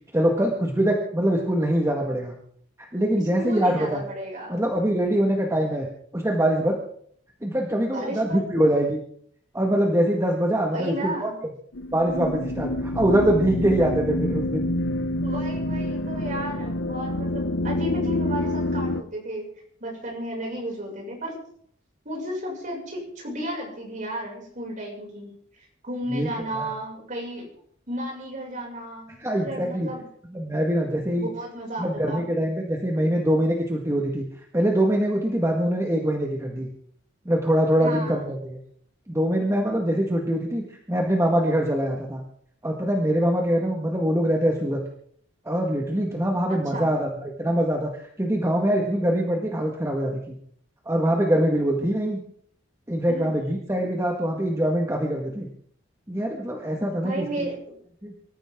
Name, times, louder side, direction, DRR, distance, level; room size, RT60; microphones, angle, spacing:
voice 1, 0.1-2.4 2.8-4.0 4.5-5.9 6.1-6.8 7.4-9.0 9.5-11.3 11.9-14.6 26.1-26.7 29.2-29.9 30.3-31.3 31.8-34.2 34.5-36.7 37.3-38.6 39.1-42.2 42.6-44.8 45.5-50.4 50.9-52.2 52.9-55.5 56.1-57.5 58.0-58.1, right 1 dB, 15° right, 0 dB, 1.8 m, -23 dB
voice 2, 3.4-4.7 7.9-8.4 10.7-11.4 15.2-19.5 19.8-21.3 22.0-25.3 25.8-27.5 27.9-30.0 31.1-32.2 37.8-38.3 46.7-46.9 53.1-53.3 56.9-57.8, right 1 dB, 40° right, -1 dB, 6.6 m, -33 dB
sound 1, 11.7-19.0, left 1 dB, 80° left, 1.0 m, -27 dB
24.5 x 14.5 x 3.8 m, 0.62 s
head